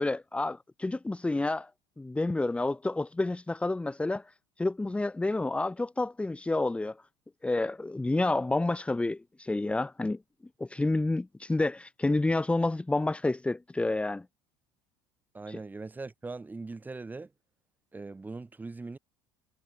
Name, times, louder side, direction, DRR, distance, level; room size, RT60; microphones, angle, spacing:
voice 1, 0.0-1.7 2.0-7.0 7.4-10.2 10.6-14.2 15.5-15.6, left 2 dB, 10° left, 2.7 m, -29 dB
voice 2, 15.3-17.3 17.9-19.0, right 3 dB, 15° right, 7.5 m, -40 dB
supercardioid pair, 100°, 11 cm